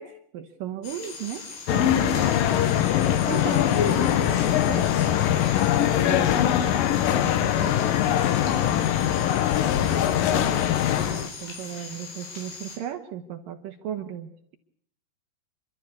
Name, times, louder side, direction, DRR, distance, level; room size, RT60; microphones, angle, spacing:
voice 1, 0.0-2.3 3.2-8.3 8.6-9.0 10.3-14.3, right 10 dB, 70° right, 5 dB, 2.2 m, -37 dB
sound 1, 0.8-12.8, left 4 dB, 85° left, 6.5 m, -40 dB
sound 2, 1.7-11.3, left 11 dB, 70° left, 2.3 m, -22 dB
27.5 x 12.5 x 8.4 m, 0.69 s
omnidirectional pair, 5.0 m